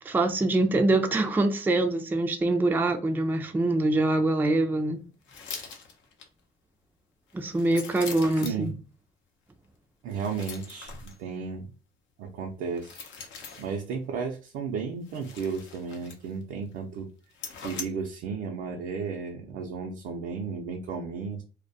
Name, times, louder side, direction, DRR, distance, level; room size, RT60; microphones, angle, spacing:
voice 1, 0.0-5.0 7.3-8.7, right 2 dB, 10° right, 0.4 m, -24 dB
sound 1, 5.2-6.3 7.3-8.7 10.1-11.2 12.7-13.8 15.0-16.4 16.7-16.8 17.3-17.8, left 5 dB, 70° left, 0.6 m, -42 dB
voice 2, 8.4-8.7 10.0-11.7 12.2-13.0 13.6-17.1 17.6-21.4, right 5 dB, 75° right, 0.5 m, -34 dB
2.2 x 2.1 x 2.6 m
supercardioid pair, 65°, 21 cm